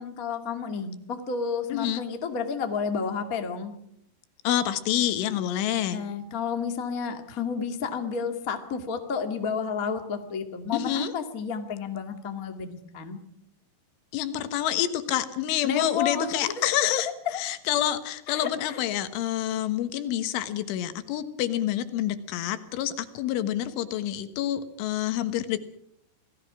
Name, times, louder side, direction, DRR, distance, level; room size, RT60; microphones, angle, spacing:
voice 1, 0.0-3.7 5.9-13.2 15.6-16.9 17.2-17.4 18.3-18.8, left 6 dB, 45° left, 5 dB, 1.0 m, -31 dB
voice 2, 1.7-2.0 4.5-6.0 10.7-11.1 14.1-25.6, left 11 dB, 80° left, 10 dB, 3.8 m, -28 dB
28.0 x 18.5 x 6.1 m, 0.71 s
omnidirectional pair, 5.6 m